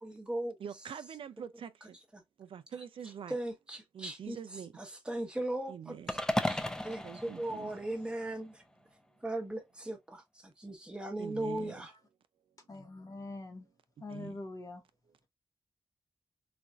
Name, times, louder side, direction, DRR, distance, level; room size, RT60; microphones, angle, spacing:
voice 1, 0.0-0.6 2.1-2.2 3.3-4.4 4.8-8.6 9.2-11.9, right 1 dB, 10° right, 0.9 m, -38 dB
voice 2, 0.6-2.0 2.4-3.4 3.9-4.8 5.7-6.2 7.0-7.7 11.2-11.7 14.0-14.4, right 8 dB, 75° right, 0.4 m, -45 dB
sound 1, 6.1-8.4, left 1 dB, 5° left, 0.4 m, -35 dB
voice 3, 12.7-13.7 14.0-14.8, left 2 dB, 40° left, 1.0 m, -43 dB
4.2 x 2.4 x 2.3 m
wide cardioid pair, 125°, 9 cm